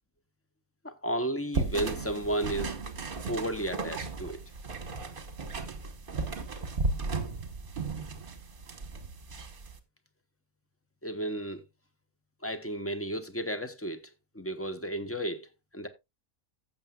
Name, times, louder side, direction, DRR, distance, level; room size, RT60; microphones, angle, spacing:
voice 1, 0.8-2.8 3.3-4.4 6.2-6.3 11.0-11.6 12.4-14.1 14.3-15.5 15.7-15.9, right 1 dB, 15° left, 0.7 m, -33 dB
sound 1, 1.5-9.8, right 3 dB, 45° right, 1.3 m, -35 dB
15.0 x 7.4 x 2.4 m
omnidirectional pair, 1.4 m